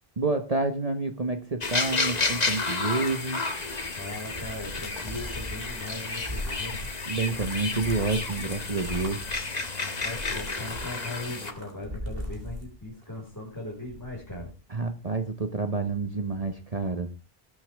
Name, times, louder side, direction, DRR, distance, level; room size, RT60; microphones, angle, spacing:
voice 1, 0.2-3.4 7.1-9.3 14.7-17.1, right 3 dB, 40° right, 7 dB, 1.2 m, -29 dB
sound 1, 1.6-11.5, left 3 dB, 45° left, 1.5 m, -31 dB
sound 2, 3.7-13.3 13.6-14.5, equal, 65° right, 3.7 m, -40 dB
voice 2, 4.0-6.9 9.8-14.5, left 2 dB, 20° left, -3 dB, 4.9 m, -39 dB
20.0 x 8.6 x 3.5 m, 0.29 s
omnidirectional pair, 1.0 m